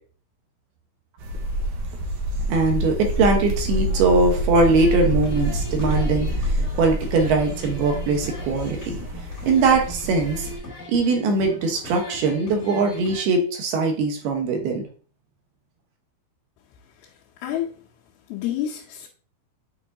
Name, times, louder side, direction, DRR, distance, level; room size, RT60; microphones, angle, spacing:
sound 1, 1.2-10.6, equal, 65° right, 2.0 m, -27 dB
voice 1, 2.5-9.0 9.5-10.5 10.9-14.8, right 3 dB, 85° right, 3 dB, 3.2 m, -21 dB
sound 2, 3.9-13.2, equal, 25° left, 1.9 m, -39 dB
voice 2, 17.0-17.8 18.3-19.1, left 11 dB, 85° left, -4 dB, 2.7 m, -30 dB
8.2 x 4.5 x 2.7 m, 0.40 s
omnidirectional pair, 4.4 m